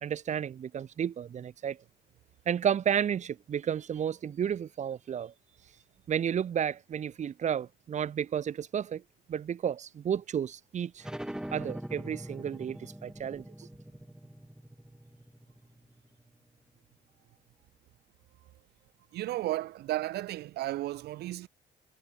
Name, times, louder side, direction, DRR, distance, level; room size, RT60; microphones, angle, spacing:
voice 1, 0.0-1.8 2.5-5.3 6.1-9.0 9.3-11.1 11.5-13.7, right 8 dB, 45° right, 1.7 m, -32 dB
sound 1, 11.0-16.3, right 1 dB, 5° right, 5.1 m, -43 dB
voice 2, 19.1-21.5, right 15 dB, 75° right, 2.3 m, -33 dB
cardioid pair, 110°, 17 cm